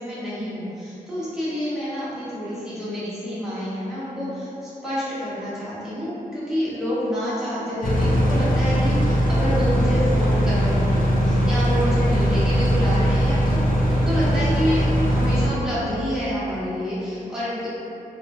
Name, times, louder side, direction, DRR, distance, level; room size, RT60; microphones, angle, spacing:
voice 1, 0.0-8.9 9.3-13.6 13.9-17.7, equal, 5° right, -12 dB, 0.8 m, -28 dB
sound 1, 7.8-15.5, equal, 60° left, 0.4 m, -20 dB
2.8 x 2.1 x 2.5 m, 2.8 s
wide cardioid pair, 135°, 15 cm